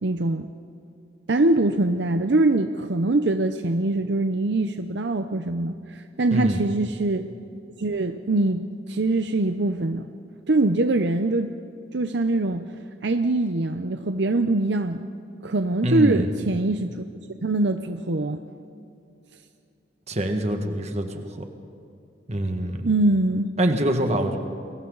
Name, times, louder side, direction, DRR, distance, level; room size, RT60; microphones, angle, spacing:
voice 1, 0.0-0.5 1.3-7.3 7.8-10.1 10.5-11.5 11.9-12.7 13.0-15.1 15.4-17.0 17.4-18.4 22.8-23.5, right 2 dB, 65° right, 7 dB, 0.7 m, -23 dB
voice 2, 6.3-6.6 15.8-16.3 20.1-21.4 22.3-22.9 23.6-24.4, right 1 dB, 35° right, 5 dB, 1.8 m, -25 dB
29.5 x 22.5 x 4.0 m, 2.6 s
head